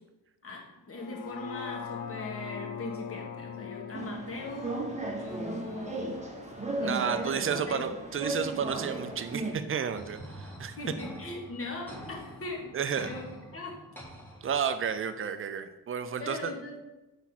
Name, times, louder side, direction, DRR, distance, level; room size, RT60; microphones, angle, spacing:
voice 1, 0.4-4.9 5.2-6.1 6.5-7.9 10.8-12.7 13.0-13.2 13.5-13.7 16.2-16.8, left 2 dB, 35° left, -1 dB, 1.7 m, -40 dB
sound 1, 0.9-7.1 7.5-7.6, left 7 dB, 75° left, 0.6 m, -42 dB
sound 2, 3.9-9.5, right 2 dB, 20° right, 1.0 m, -35 dB
voice 2, 6.8-10.9 12.7-13.1 14.4-16.5, right 7 dB, 35° right, 10 dB, 0.5 m, -32 dB
sound 3, 10.0-15.0, equal, 5° left, 1.5 m, -46 dB
5.9 x 4.0 x 4.2 m, 1.0 s
cardioid pair, 90°, 39 cm